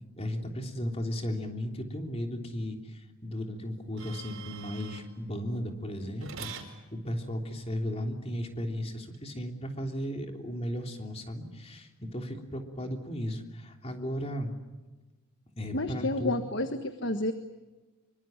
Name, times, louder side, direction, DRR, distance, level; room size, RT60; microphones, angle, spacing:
voice 1, 0.2-14.5 15.6-16.3, equal, 30° left, 3 dB, 3.4 m, -35 dB
sound 1, 4.0-5.1 6.2-6.7 9.1-9.2, right 6 dB, 65° right, 4.8 m, -43 dB
voice 2, 15.7-17.3, left 1 dB, 55° left, 8 dB, 1.5 m, -30 dB
26.0 x 24.5 x 9.0 m, 1.2 s
head